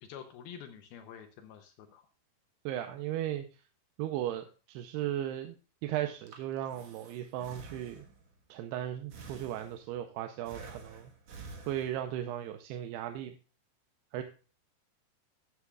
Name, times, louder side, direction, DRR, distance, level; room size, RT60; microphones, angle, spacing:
voice 1, 0.0-2.1 14.2-14.3, left 8 dB, 75° left, 6 dB, 2.4 m, -48 dB
voice 2, 2.7-3.6 4.0-5.5 5.8-8.0 8.5-11.1 11.7-13.4 14.1-14.2, right 12 dB, 80° right, 6 dB, 2.7 m, -36 dB
Breathing, 6.0-8.3 9.1-10.0 10.5-12.3, right 4 dB, 55° right, 1.9 m, -49 dB
14.0 x 8.4 x 2.4 m, 0.34 s
omnidirectional pair, 4.8 m